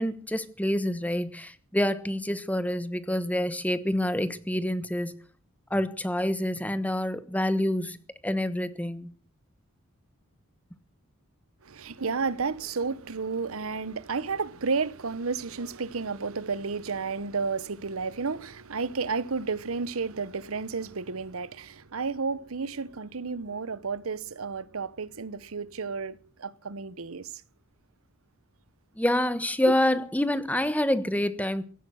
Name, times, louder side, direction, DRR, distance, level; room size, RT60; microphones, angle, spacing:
voice 1, 0.0-5.2 5.7-8.0 8.2-9.1 29.0-31.6, left 1 dB, 5° left, 1.1 m, -27 dB
voice 2, 11.7-27.3 29.6-29.8, right 4 dB, 75° right, 0.9 m, -32 dB
16.5 x 12.5 x 6.3 m
head